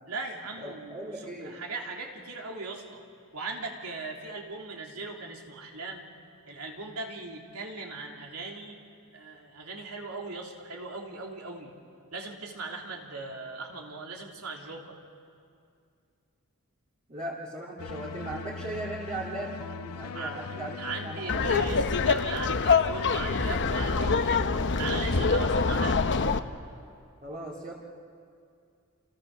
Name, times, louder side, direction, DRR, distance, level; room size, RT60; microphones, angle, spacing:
voice 1, 0.1-3.0 3.3-6.0 6.5-8.8 9.1-11.7 12.1-15.0 20.0-26.0, right 3 dB, 75° right, 0 dB, 3.5 m, -38 dB
voice 2, 0.6-1.5 17.1-21.5 27.2-27.7, right 2 dB, 35° right, -6 dB, 2.8 m, -38 dB
sound 1, 17.8-26.2, left 5 dB, 80° left, 0.6 m, -40 dB
Laughter, 21.3-26.4, left 4 dB, 55° left, 1.0 m, -25 dB
29.0 x 28.0 x 6.8 m, 2.4 s
head